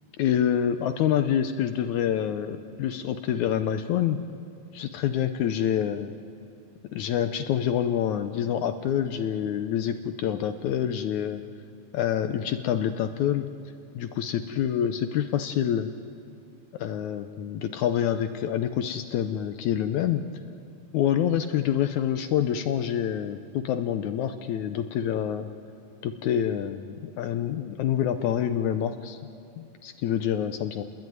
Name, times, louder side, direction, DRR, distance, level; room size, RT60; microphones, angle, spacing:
voice 1, 0.2-4.2 4.7-6.2 6.9-11.4 11.9-13.5 13.9-15.9 16.8-20.2 20.9-25.5 26.0-29.2 29.6-30.8, left 9 dB, 75° left, 8 dB, 1.8 m, -27 dB
29.0 x 21.0 x 9.4 m, 2.6 s
omnidirectional pair, 4.2 m